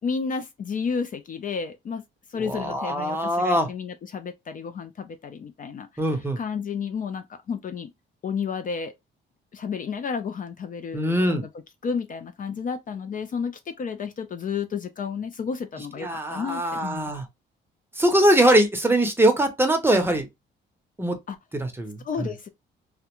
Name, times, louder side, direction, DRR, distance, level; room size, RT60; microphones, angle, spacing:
voice 1, 0.0-2.0 2.3-7.9 8.2-8.9 9.5-11.5 11.8-17.1 21.3-21.4 22.0-22.5, left 6 dB, 45° left, 0.4 m, -31 dB
voice 2, 2.5-3.7 6.0-6.4 10.9-11.4 16.0-17.2 18.0-20.3 21.0-21.2 21.6-22.3, right 1 dB, 10° right, 0.7 m, -22 dB
2.4 x 2.1 x 2.9 m
cardioid pair, 90°, 20 cm